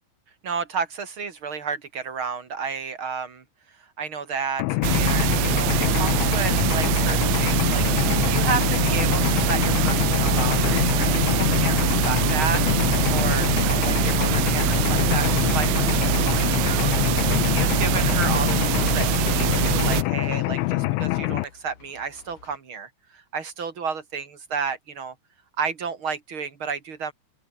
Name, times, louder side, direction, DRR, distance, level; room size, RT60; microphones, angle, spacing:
voice 1, 0.4-3.4 4.0-12.6 13.1-16.9 17.5-25.1 25.6-27.1, right 5 dB, 40° right, 2.1 m, -32 dB
Mechanisms, 4.6-21.4, left 19 dB, 85° left, 3.2 m, -24 dB
sound 1, 4.8-20.0, right 19 dB, 85° right, 3.3 m, -24 dB
sound 2, 16.2-22.6, left 6 dB, 50° left, 5.0 m, -50 dB
open air
omnidirectional pair, 5.3 m